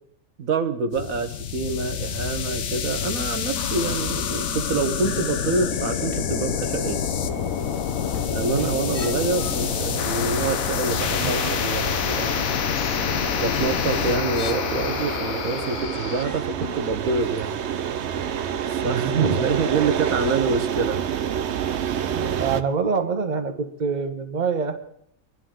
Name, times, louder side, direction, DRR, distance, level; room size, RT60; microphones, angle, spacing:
voice 1, 0.4-7.0 8.3-12.5 13.4-17.6 18.8-21.0, right 4 dB, 85° right, 7 dB, 1.5 m, -26 dB
sound 1, 0.9-16.2, left 8 dB, 90° left, 1.2 m, -27 dB
sound 2, 3.7-22.6, right 8 dB, 60° right, 0.9 m, -31 dB
sound 3, 7.7-9.6 10.5-13.0 13.3-14.9 15.4-17.0 17.4-17.5, left 5 dB, 35° left, 0.6 m, -40 dB
voice 2, 18.8-19.4 22.1-24.8, right 5 dB, 35° right, 6 dB, 1.1 m, -26 dB
23.5 x 11.5 x 3.8 m, 0.71 s
omnidirectional pair, 1.4 m